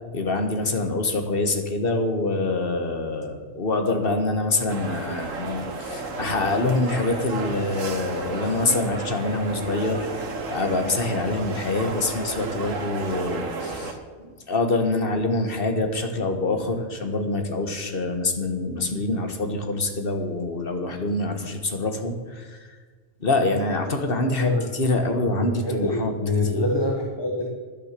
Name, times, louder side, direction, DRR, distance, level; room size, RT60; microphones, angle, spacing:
voice 1, 0.1-10.1 10.5-13.9 14.3-22.6 23.2-26.1 26.5-26.6, left 2 dB, 45° left, 6 dB, 1.7 m, -25 dB
sound 1, 4.7-13.9, right 3 dB, 75° right, 1.8 m, -32 dB
voice 2, 24.4-24.7 25.3-27.5, left 2 dB, 20° left, 0 dB, 1.3 m, -25 dB
11.0 x 10.0 x 7.5 m, 1.5 s
omnidirectional pair, 1.4 m